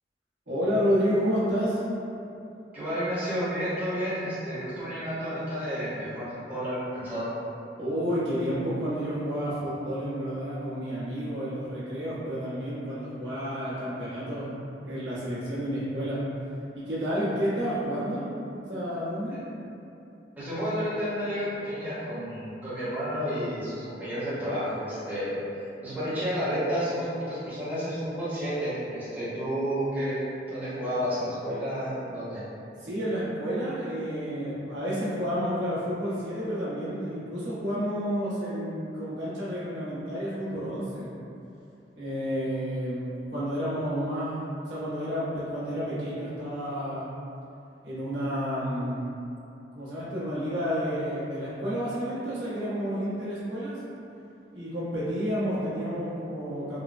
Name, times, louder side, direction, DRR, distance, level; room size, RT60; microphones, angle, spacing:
voice 1, 0.5-1.8 7.8-14.5 14.8-16.2 16.7-18.3 18.7-19.4 32.8-41.1 41.9-47.1 47.8-49.1 49.7-53.8 54.5-56.8, equal, 80° right, -11 dB, 1.1 m, -30 dB
voice 2, 2.7-7.3 20.4-25.4 25.8-30.2 30.5-32.4, equal, 10° right, -13 dB, 0.8 m, -31 dB
3.7 x 2.1 x 2.4 m, 2.8 s
head